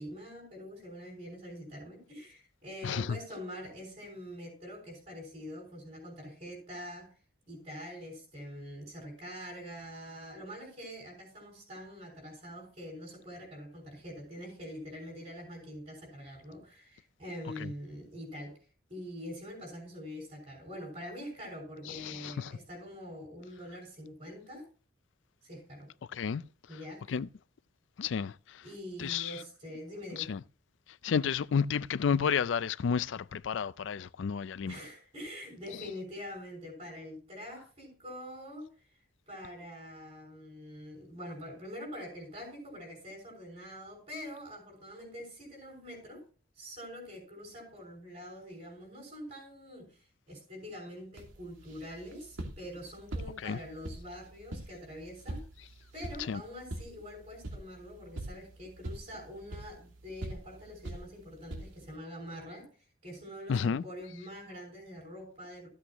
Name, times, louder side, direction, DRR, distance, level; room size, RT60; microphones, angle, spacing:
voice 1, 0.0-7.1 7.5-18.6 18.9-24.7 25.4-25.9 26.7-27.2 28.6-30.3 34.7-38.9 39.3-46.2 46.5-55.4 55.9-62.7 63.0-65.7, equal, 35° right, 5.8 m, -45 dB
voice 2, 2.8-3.2 17.6-17.7 21.9-22.5 26.1-26.4 27.1-27.3 28.0-28.6 29.0-29.4 30.1-30.4 31.0-34.8 53.4-53.6 56.3-56.4 63.5-63.8, left 6 dB, 70° left, 0.4 m, -31 dB
sound 1, 51.2-62.0, right 1 dB, 80° right, 2.5 m, -44 dB
14.5 x 8.3 x 3.0 m
head